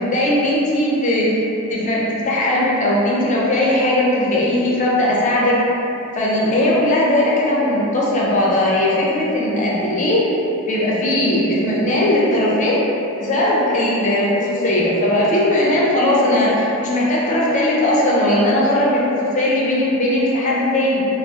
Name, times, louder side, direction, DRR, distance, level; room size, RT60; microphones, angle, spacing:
voice 1, 0.0-1.4 1.7-5.6 6.1-10.2 10.7-12.9 13.2-21.1, left 1 dB, 35° left, -5 dB, 0.5 m, -18 dB
3.6 x 2.0 x 2.7 m, 3.0 s
head